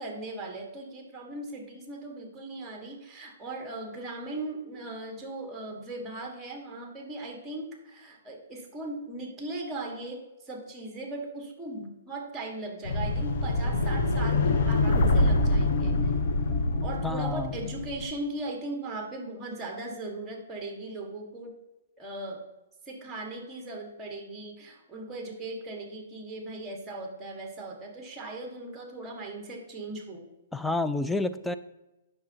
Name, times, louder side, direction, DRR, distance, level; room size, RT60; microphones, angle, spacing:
voice 1, 0.0-16.1 16.8-21.5 22.0-22.4 22.9-30.2, right 2 dB, 10° right, 2 dB, 1.7 m, -38 dB
sound 1, 12.8-18.1, left 2 dB, 60° left, 1.1 m, -25 dB
voice 2, 17.0-17.5 30.5-31.6, left 2 dB, 5° left, 10 dB, 0.4 m, -29 dB
8.6 x 6.4 x 2.9 m, 1.0 s
hypercardioid pair, 140°, 0 cm